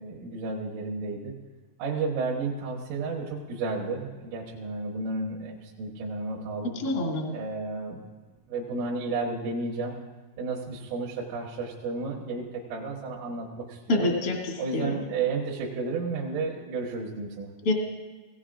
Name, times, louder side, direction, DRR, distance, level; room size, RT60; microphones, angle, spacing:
voice 1, 0.0-1.4 1.8-6.8 7.3-8.0 8.5-10.0 10.4-14.1 14.6-17.5, right 3 dB, 80° right, -4 dB, 3.9 m, -32 dB
voice 2, 6.6-7.3 13.9-14.9 17.6-17.7, left 2 dB, 70° left, -1 dB, 0.9 m, -27 dB
19.5 x 17.0 x 2.5 m, 1.3 s
omnidirectional pair, 5.8 m